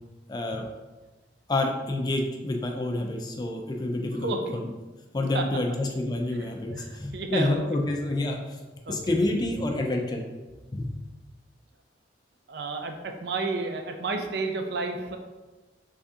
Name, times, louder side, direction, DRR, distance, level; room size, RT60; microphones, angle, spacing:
voice 1, 0.3-0.7 1.5-4.7 5.1-8.6 8.9-10.2 10.7-11.0, left 2 dB, 20° left, 2 dB, 0.3 m, -28 dB
voice 2, 4.1-4.6 5.3-5.5 6.7-7.6 8.9-9.1 12.5-15.2, right 3 dB, 60° right, 4 dB, 0.4 m, -31 dB
3.6 x 3.3 x 2.7 m, 1.2 s
head